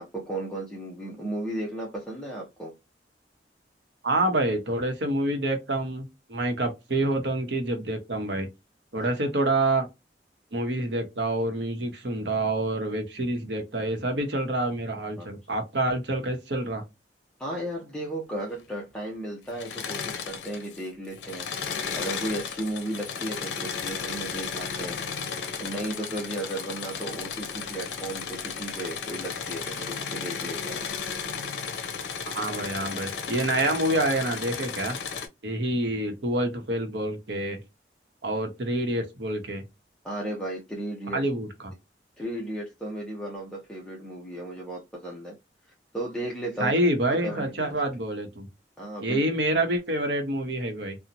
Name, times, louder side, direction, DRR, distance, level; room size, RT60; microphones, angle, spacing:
voice 1, 0.0-2.7 8.9-9.1 15.2-15.3 17.4-21.5 21.9-25.0 25.6-30.9 40.0-41.2 42.2-45.4 45.9-46.8 47.1-47.8 48.8-49.2, right 1 dB, 5° left, 0.6 m, -35 dB
voice 2, 4.0-8.5 8.9-9.9 10.5-16.8 32.3-35.0 35.4-37.6 38.2-39.6 41.1-41.5 46.6-48.5 49.0-51.0, right 1 dB, 70° right, 0.8 m, -27 dB
Engine / Mechanisms, 19.5-20.8 21.1-35.3, left 6 dB, 75° left, 0.6 m, -34 dB
2.8 x 2.1 x 2.4 m
head